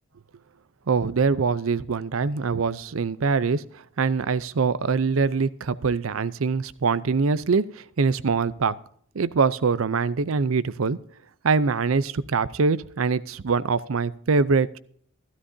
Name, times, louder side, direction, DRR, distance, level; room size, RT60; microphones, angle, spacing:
voice 1, 0.9-8.8 9.1-11.0 11.4-14.8, right 4 dB, 80° right, 0.6 m, -23 dB
15.5 x 13.0 x 2.7 m
head